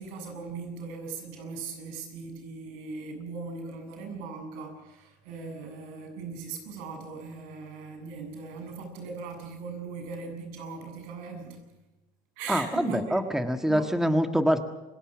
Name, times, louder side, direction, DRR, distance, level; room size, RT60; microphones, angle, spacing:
voice 1, 0.0-11.6 12.4-13.2 13.7-13.9, right 4 dB, 80° right, 5 dB, 7.5 m, -39 dB
voice 2, 12.5-14.6, equal, 5° right, 7 dB, 1.6 m, -25 dB
28.5 x 17.0 x 6.2 m, 1.1 s
cardioid pair, 110°, 15 cm